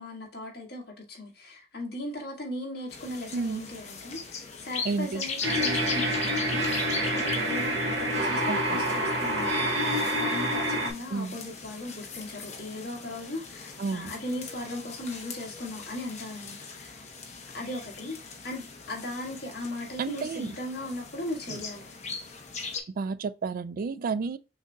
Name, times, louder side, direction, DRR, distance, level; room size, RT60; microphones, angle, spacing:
voice 1, 0.0-6.7 7.0-17.0 17.5-18.2 18.4-22.0, left 1 dB, 65° left, 1.6 m, -38 dB
sound 1, 2.9-22.8, left 5 dB, 40° left, 0.8 m, -40 dB
voice 2, 3.3-3.6 4.8-5.2 8.5-8.6 11.1-11.4 13.8-14.1 20.0-20.5 21.5-21.6 22.9-24.4, right 4 dB, 50° right, 0.3 m, -31 dB
sound 2, 5.4-10.9, right 1 dB, 75° right, 0.8 m, -27 dB
6.3 x 2.7 x 2.2 m
head